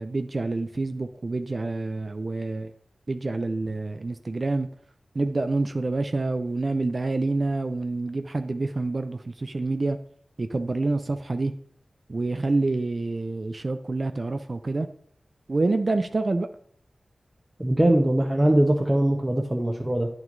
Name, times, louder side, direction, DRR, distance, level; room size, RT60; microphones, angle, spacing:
voice 1, 0.0-2.7 3.1-4.7 5.2-10.0 10.4-11.5 12.1-14.9 15.5-16.5, right 3 dB, 50° right, 8 dB, 0.4 m, -27 dB
voice 2, 17.6-20.1, right 1 dB, 25° right, 1 dB, 0.8 m, -21 dB
9.2 x 6.0 x 2.6 m, 0.63 s
cardioid pair, 45°, 0 cm